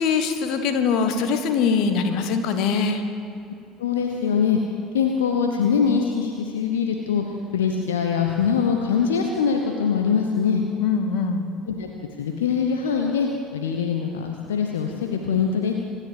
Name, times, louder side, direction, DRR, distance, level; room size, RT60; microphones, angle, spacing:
voice 1, 0.0-3.0 10.8-11.5, left 5 dB, 55° left, 7 dB, 1.5 m, -22 dB
voice 2, 3.8-4.6 4.9-7.2 7.5-10.6 11.7-11.9 12.2-15.7, left 6 dB, 70° left, 3 dB, 1.1 m, -23 dB
26.0 x 10.5 x 5.2 m, 2.6 s
figure-of-eight pair, 60°, 0 cm